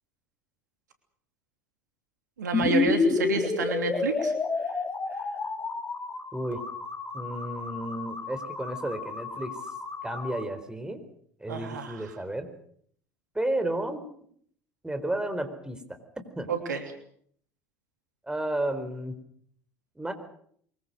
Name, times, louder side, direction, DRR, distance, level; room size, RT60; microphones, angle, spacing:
voice 1, 2.4-4.3 5.1-5.2 11.5-12.1 16.5-16.8, right 4 dB, 80° right, 6 dB, 3.1 m, -29 dB
sound 1, 2.5-10.4, left 4 dB, 25° left, 2.9 m, -30 dB
voice 2, 7.1-9.5 10.0-11.0 11.4-12.5 13.3-14.0 14.8-15.8 16.4-16.5 18.3-19.2 20.0-20.1, right 1 dB, 10° right, 8 dB, 4.3 m, -32 dB
24.0 x 22.0 x 6.4 m, 0.63 s
figure-of-eight pair, 70°, 10 cm